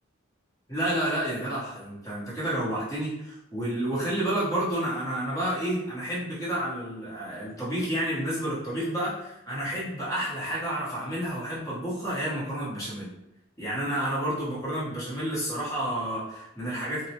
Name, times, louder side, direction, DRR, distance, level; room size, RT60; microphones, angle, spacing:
voice 1, 0.7-13.1 13.6-17.1, right 1 dB, 20° left, -9 dB, 1.0 m, -30 dB
2.3 x 2.0 x 2.8 m, 0.86 s
head